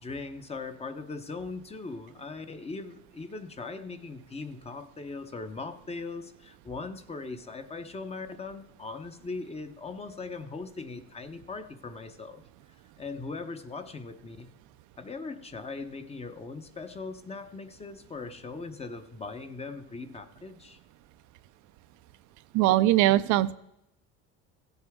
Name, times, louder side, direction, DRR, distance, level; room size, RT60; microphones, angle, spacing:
voice 1, 0.0-12.4 13.0-14.5 15.0-20.8, left 3 dB, 20° left, 9 dB, 0.8 m, -40 dB
voice 2, 22.5-23.5, right 15 dB, 65° right, 13 dB, 0.5 m, -21 dB
16.0 x 8.0 x 3.6 m, 0.86 s
cardioid pair, 115°, 32 cm